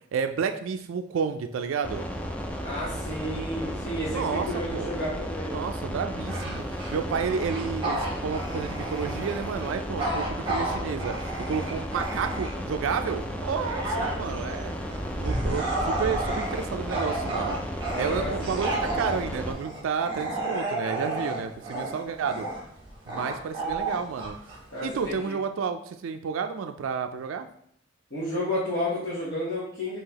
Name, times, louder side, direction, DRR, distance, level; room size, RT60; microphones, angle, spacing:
voice 1, 0.1-2.1 4.1-4.9 5.5-6.6 6.9-14.7 15.2-17.6 18.0-22.5 23.1-24.4 24.8-27.5, right 6 dB, 90° right, 7 dB, 0.3 m, -31 dB
sound 1, 1.8-19.5, equal, 5° left, 0.3 m, -34 dB
voice 2, 2.6-5.6 17.9-18.3 24.7-25.3 28.1-30.0, left 1 dB, 55° left, -9 dB, 1.2 m, -31 dB
Bark / Growling, 6.2-12.8 13.2-25.1, right 2 dB, 25° right, 1.0 m, -32 dB
5.5 x 2.8 x 2.9 m, 0.68 s
head